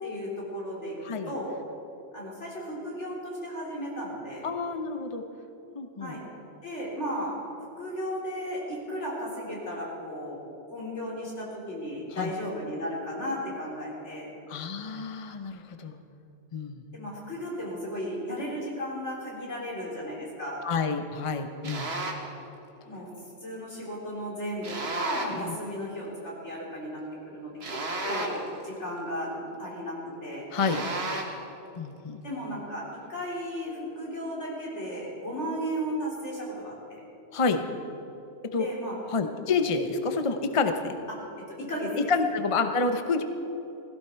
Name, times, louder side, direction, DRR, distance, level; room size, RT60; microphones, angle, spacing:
voice 1, 0.0-0.9 1.3-1.6 2.1-4.5 6.0-6.2 6.6-7.3 7.8-10.4 10.7-14.3 16.9-20.6 22.9-23.1 23.4-28.4 28.6-29.3 29.6-30.0 30.2-30.4 32.2-32.8 33.1-37.0 38.6-39.0 41.7-41.9, equal, 80° left, -4 dB, 4.0 m, -35 dB
voice 2, 4.4-5.2 5.7-6.2 12.1-12.3 14.5-16.0 16.5-16.8 20.6-21.9 25.3-25.5 30.5-30.8 31.8-32.2 37.3-37.7 38.5-38.7 39.1-41.0 42.0-43.2, left 4 dB, 30° left, 7 dB, 0.7 m, -28 dB
sound 1, 21.6-22.3 24.6-25.5 27.6-28.6 30.6-31.5, right 2 dB, 60° right, 1.6 m, -33 dB
16.5 x 16.5 x 4.5 m, 2.9 s
omnidirectional pair, 1.2 m